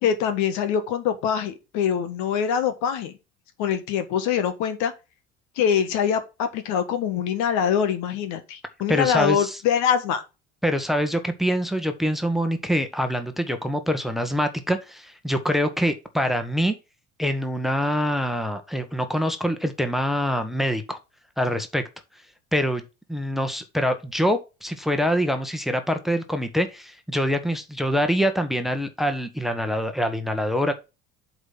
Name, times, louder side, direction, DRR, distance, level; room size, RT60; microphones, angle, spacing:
voice 1, 0.0-3.1 3.6-4.9 5.6-10.2, left 8 dB, 55° left, 1.4 m, -24 dB
voice 2, 8.9-9.6 10.6-16.7 17.2-21.0 21.4-21.8 22.5-22.8 23.1-30.7, equal, ahead, 1.2 m, -25 dB
8.0 x 4.1 x 5.5 m
hypercardioid pair, 75°, 34 cm